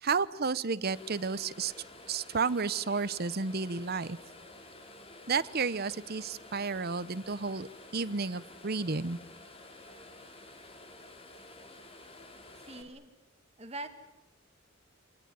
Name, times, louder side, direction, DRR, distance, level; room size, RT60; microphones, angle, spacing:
voice 1, 0.0-1.7 2.1-4.2 5.3-7.7 7.9-9.2, right 4 dB, 50° right, 16 dB, 0.9 m, -32 dB
sound 1, 0.8-12.8, left 2 dB, 30° left, 3.0 m, -51 dB
voice 2, 12.6-13.1 13.6-13.9, right 2 dB, 30° right, 8 dB, 2.1 m, -42 dB
26.0 x 20.0 x 9.4 m, 1.0 s
head